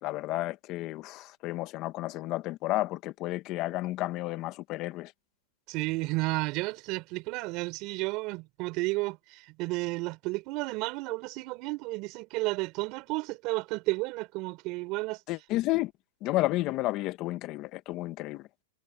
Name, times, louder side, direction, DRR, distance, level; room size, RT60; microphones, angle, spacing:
voice 1, 0.0-5.1 15.3-15.9 16.2-18.5, left 18 dB, 30° left, 1.3 m, -31 dB
voice 2, 5.7-15.2, right 24 dB, 35° right, 5.2 m, -32 dB
hypercardioid pair, 150°, 0 cm